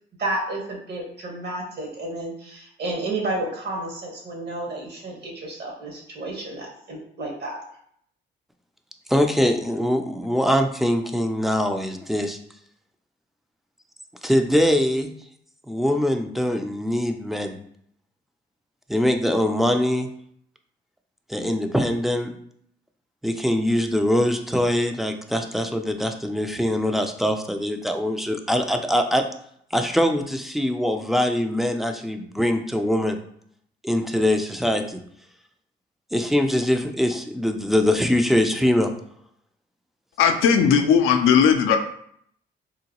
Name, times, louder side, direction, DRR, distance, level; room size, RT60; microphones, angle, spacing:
voice 1, 0.2-7.5, right 2 dB, 60° right, -1 dB, 1.2 m, -31 dB
voice 2, 9.1-12.4 14.2-15.1 15.7-17.6 18.9-20.1 21.3-22.3 23.2-29.2 29.7-33.2 33.8-35.0 36.1-38.9, left 1 dB, ahead, 6 dB, 0.3 m, -22 dB
voice 3, 40.2-41.8, left 7 dB, 85° left, 5 dB, 0.4 m, -17 dB
3.7 x 2.2 x 2.8 m, 0.67 s
cardioid pair, 90°, 20 cm